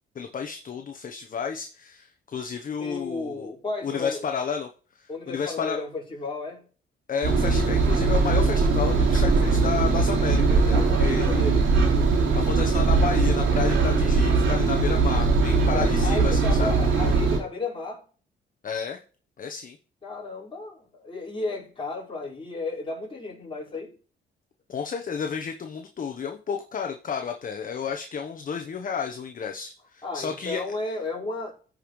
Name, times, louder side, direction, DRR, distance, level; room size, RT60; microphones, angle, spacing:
voice 1, 0.1-3.5 3.8-4.7 4.9-5.8 7.1-11.4 12.3-16.7 18.6-19.0 19.4-19.8 24.7-30.6, left 6 dB, 45° left, 0.9 m, -31 dB
voice 2, 2.8-4.3 5.1-6.7 10.7-11.7 15.6-18.0 20.0-24.0 30.0-31.5, left 3 dB, 25° left, 5.0 m, -33 dB
Engine, 7.2-17.4, right 4 dB, 80° right, 3.3 m, -21 dB
14.5 x 5.2 x 3.1 m
cardioid pair, 90°, 20 cm